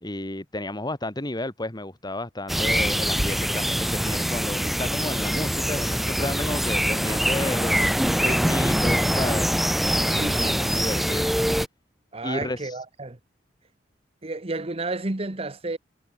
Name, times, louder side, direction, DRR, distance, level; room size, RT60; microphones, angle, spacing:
voice 1, 0.0-9.5 10.1-11.3 12.2-12.7, left 1 dB, 25° left, 2.4 m, -32 dB
sound 1, 2.5-11.7, equal, ahead, 0.4 m, -24 dB
voice 2, 10.1-10.7 12.1-13.2 14.2-15.8, right 2 dB, 35° right, 1.2 m, -31 dB
head